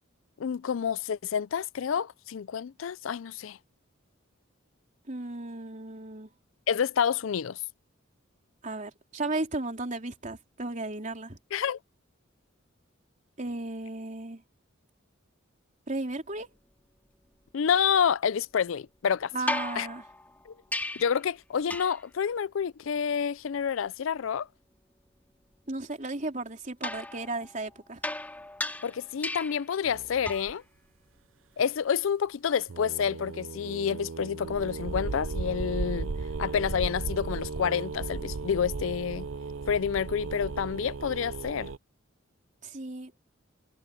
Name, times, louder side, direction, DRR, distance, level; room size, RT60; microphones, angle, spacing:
voice 1, 0.4-3.6 6.7-7.6 11.5-11.8 17.5-19.3 19.8-19.9 20.5-20.6 21.0-24.5 28.8-30.6 31.6-36.1 36.4-39.3 39.7-41.7, left 7 dB, 75° left, 0.4 m, -28 dB
voice 2, 5.1-6.3 8.6-11.4 13.4-14.4 15.9-16.5 19.3-20.0 25.7-28.0 42.6-43.1, right 2 dB, 40° right, 3.4 m, -35 dB
sound 1, 19.5-21.2 21.7-22.1 26.8-29.7 30.2-30.6 32.6-32.7, left 2 dB, 10° left, 2.5 m, -36 dB
sound 2, 29.8-30.5 32.7-41.8, right 4 dB, 75° right, 0.7 m, -36 dB
head